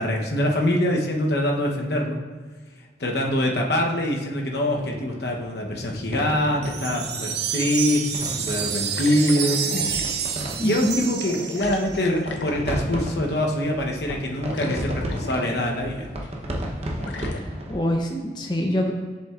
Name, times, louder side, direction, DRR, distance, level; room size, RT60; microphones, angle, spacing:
voice 1, 0.0-2.2 3.0-9.9 10.6-16.1, left 1 dB, 60° left, 0 dB, 0.9 m, -24 dB
sound 1, 4.8-17.8, equal, 35° right, 0.8 m, -34 dB
sound 2, 6.6-12.0, right 7 dB, 65° right, 0.6 m, -29 dB
sound 3, 8.9-10.2 11.3-13.1 14.2-14.3 14.5-15.9 16.2-16.3 17.0-17.4, left 3 dB, 75° left, 0.5 m, -36 dB
voice 2, 10.6-11.0 17.3-18.9, equal, 25° left, 1 dB, 0.6 m, -25 dB
7.4 x 7.4 x 2.4 m, 1.5 s
head